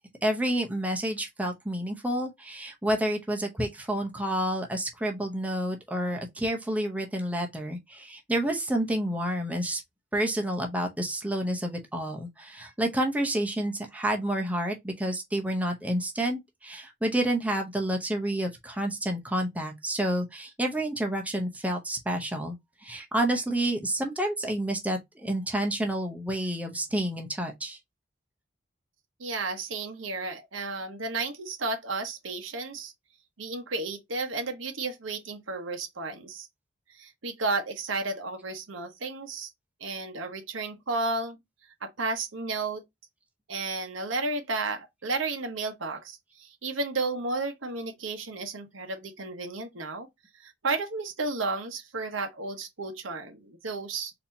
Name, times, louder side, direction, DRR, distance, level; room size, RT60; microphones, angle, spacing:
voice 1, 0.2-9.8 10.1-22.6 22.8-27.8, right 1 dB, 5° right, 0.7 m, -29 dB
voice 2, 29.2-32.9 33.4-36.5 36.9-39.5 39.8-41.4 41.8-42.8 43.5-50.1 50.4-54.1, right 3 dB, 85° right, 1.0 m, -33 dB
4.2 x 2.8 x 2.7 m
head